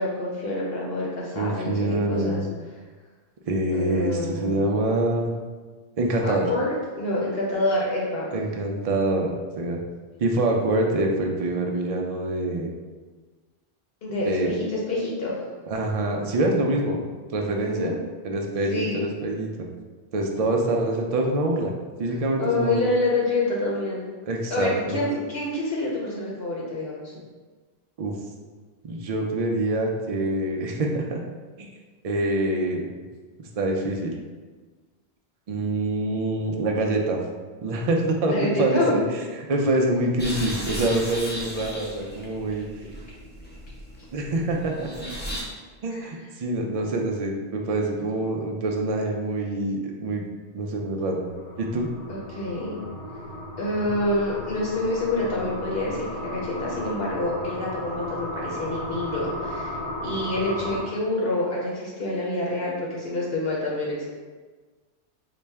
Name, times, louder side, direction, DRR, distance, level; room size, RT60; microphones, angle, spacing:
voice 1, 0.0-2.4 3.7-4.6 6.2-8.3 14.0-15.4 17.6-18.0 18.7-19.0 22.4-24.0 24.5-27.1 38.3-39.0 45.9-46.1 52.1-52.8 53.6-64.1, left 2 dB, 65° left, -4 dB, 0.9 m, -27 dB
voice 2, 1.3-2.5 3.5-5.3 6.0-6.5 8.3-9.8 10.2-12.7 14.3-14.5 15.7-17.0 17.3-17.9 18.2-19.7 20.1-21.7 22.0-22.9 24.3-25.0 28.0-28.1 28.8-31.2 31.6-31.7 32.0-32.8 33.4-34.1 35.5-37.2 37.6-42.7 44.1-45.1 45.8-50.2 50.5-51.2 51.6-51.9, right 2 dB, 60° right, 1 dB, 0.3 m, -25 dB
sound 1, 40.2-45.4, equal, 15° left, 0.4 m, -36 dB
sound 2, 51.3-60.8, equal, 80° left, 1.1 m, -35 dB
4.1 x 2.1 x 3.3 m, 1.4 s
omnidirectional pair, 1.1 m